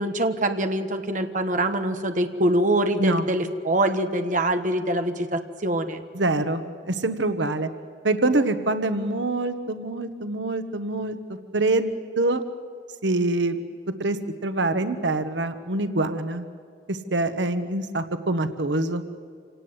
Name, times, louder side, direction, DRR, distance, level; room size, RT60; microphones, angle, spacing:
voice 1, 0.0-6.0, right 1 dB, 45° right, 7 dB, 1.4 m, -24 dB
voice 2, 6.1-7.7 8.0-11.2 11.5-12.4 13.0-13.6 14.0-16.4 16.9-19.0, right 2 dB, 85° right, 10 dB, 1.2 m, -25 dB
27.0 x 18.5 x 8.0 m, 2.2 s
head